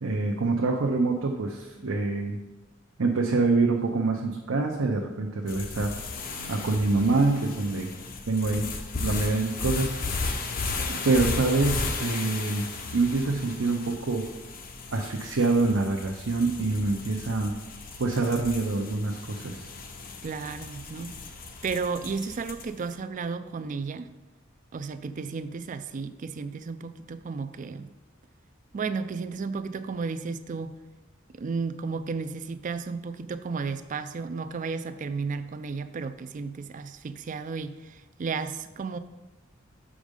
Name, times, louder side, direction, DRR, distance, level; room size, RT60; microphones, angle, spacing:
voice 1, 0.0-2.4 3.0-5.9 6.5-7.9 8.3-8.7 9.0-9.9 10.9-12.6 12.9-14.2 14.9-17.5 18.0-19.6, right 3 dB, 85° right, 0 dB, 0.7 m, -25 dB
sound 1, 5.5-22.8, left 3 dB, 45° left, 0.7 m, -35 dB
voice 2, 20.2-21.2 21.6-24.1 24.7-27.9 28.7-30.7 31.3-39.0, right 4 dB, 40° right, 11 dB, 0.4 m, -33 dB
6.3 x 4.9 x 5.2 m, 1.1 s
head